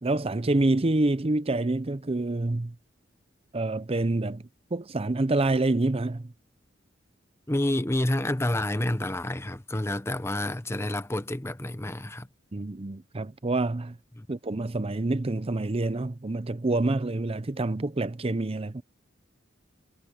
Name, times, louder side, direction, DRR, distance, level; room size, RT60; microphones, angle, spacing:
voice 1, 0.0-2.8 3.5-6.3 12.5-14.0 14.3-18.8, right 2 dB, 30° right, 0.7 m, -27 dB
voice 2, 7.5-12.3 14.2-14.3, left 1 dB, 15° left, 0.9 m, -29 dB
head